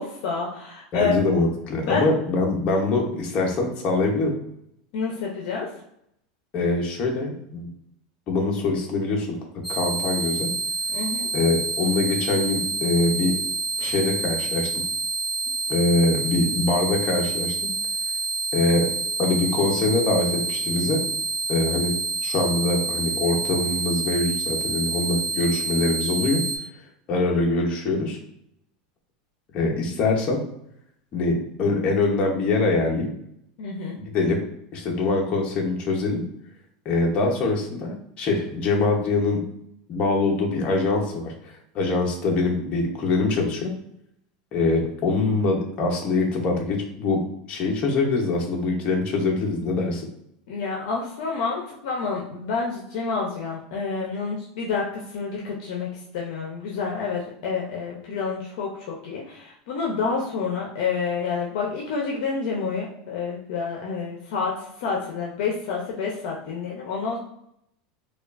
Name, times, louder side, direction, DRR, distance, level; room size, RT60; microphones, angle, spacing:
voice 1, 0.0-1.1 1.8-2.1 4.9-5.7 10.9-11.3 13.8-13.9 33.6-34.0 50.5-55.9 56.1-67.2, left 5 dB, 65° left, -2 dB, 0.7 m, -28 dB
voice 2, 0.9-4.3 6.5-7.7 8.3-9.3 9.7-10.5 11.3-13.3 13.8-14.7 15.7-17.5 18.5-18.9 19.2-21.0 21.5-21.9 22.2-26.4 27.1-28.2 29.5-30.4 31.1-33.1 34.0-34.4 34.7-36.2 36.8-39.4 39.9-43.7 44.5-47.2 47.5-50.0, left 3 dB, 35° left, 0 dB, 0.9 m, -23 dB
sound 1, 9.6-26.6, right 3 dB, 5° left, 0.7 m, -28 dB
4.8 x 2.4 x 2.5 m, 0.75 s
supercardioid pair, 145°, 3 cm